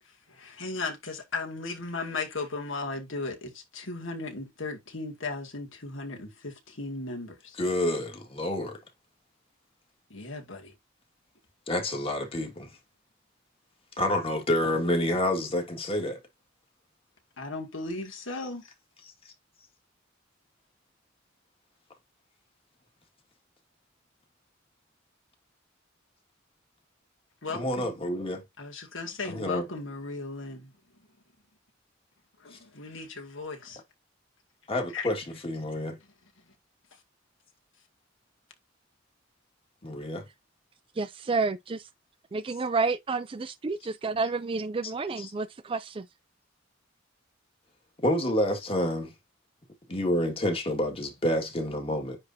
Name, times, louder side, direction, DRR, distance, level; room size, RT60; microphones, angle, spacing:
voice 1, 0.3-7.6 10.1-10.8 17.4-18.7 27.4-28.1 28.6-30.7 32.4-33.8 34.9-35.1, left 3 dB, 75° left, 2.2 m, -36 dB
voice 2, 7.6-8.8 11.7-12.7 14.0-16.2 27.5-28.4 29.3-29.6 32.5-32.6 34.7-36.0 39.8-40.2 45.2-45.3 48.0-49.1 49.9-52.2, left 1 dB, 30° left, 1.9 m, -28 dB
voice 3, 41.0-41.9 42.3-46.1, right 4 dB, 25° right, 0.4 m, -30 dB
9.7 x 3.5 x 2.7 m
head